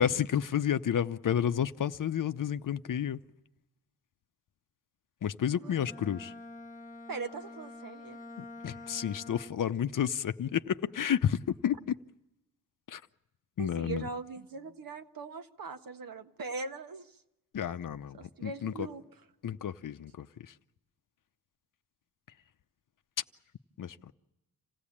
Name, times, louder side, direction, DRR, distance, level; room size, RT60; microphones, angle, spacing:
voice 1, 0.0-3.2 5.2-6.3 8.4-12.0 12.9-13.0 13.6-14.1 17.5-18.9 19.4-20.5 23.8-24.1, left 9 dB, 55° left, 10 dB, 0.8 m, -31 dB
Bowed string instrument, 5.7-9.8, left 2 dB, 20° left, 1.6 m, -47 dB
voice 2, 7.1-8.2 13.6-17.2 18.1-19.0, right 4 dB, 55° right, 7 dB, 1.5 m, -40 dB
27.5 x 16.5 x 8.6 m, 0.92 s
cardioid pair, 105°, 40 cm